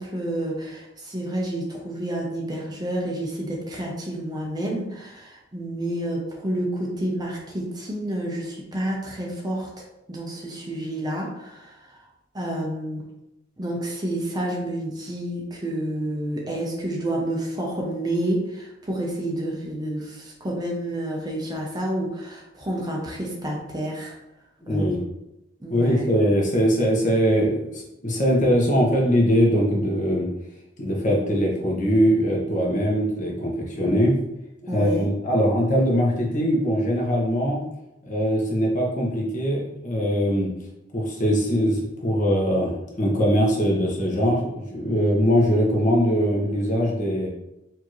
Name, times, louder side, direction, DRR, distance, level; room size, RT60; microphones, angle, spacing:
voice 1, 0.0-12.0 12.3-13.0 13.6-24.2 24.7-25.0 25.6-26.1 34.7-35.1, right 1 dB, 20° right, -1 dB, 0.7 m, -29 dB
voice 2, 24.7-25.0 25.7-30.3 30.8-34.1 34.7-37.6 38.0-40.5 40.9-47.3, equal, 40° left, -2 dB, 1.0 m, -21 dB
4.6 x 2.8 x 3.0 m, 0.90 s
head